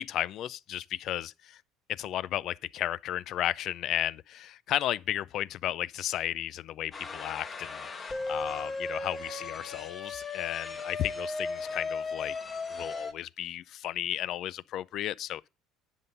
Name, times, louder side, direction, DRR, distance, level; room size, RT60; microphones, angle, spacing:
voice 1, 0.0-1.6 1.9-12.4 12.7-15.5, left 12 dB, 50° left, 0.4 m, -34 dB
sound 1, 6.9-13.1, left 3 dB, 20° left, 1.2 m, -36 dB
10.0 x 5.5 x 5.3 m
cardioid pair, 135°, 0 cm